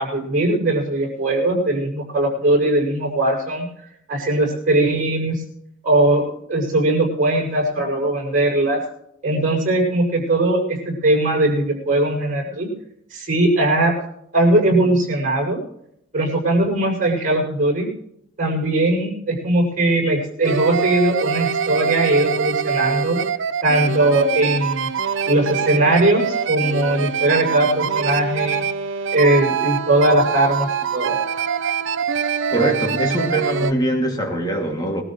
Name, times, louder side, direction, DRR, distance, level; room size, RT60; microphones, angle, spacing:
voice 1, 0.0-3.7 4.1-5.4 5.8-6.2 6.5-8.8 9.2-12.7 13.1-13.9 14.3-15.6 16.1-17.9 18.4-23.2 23.6-24.9 25.2-28.6 29.1-31.2, right 1 dB, 40° right, 6.9 m, -19 dB
sound 1, 20.4-33.7, right 7 dB, 65° right, 0.7 m, -24 dB
voice 2, 32.5-35.0, right 1 dB, 20° left, 2.5 m, -22 dB
21.5 x 13.5 x 3.2 m
head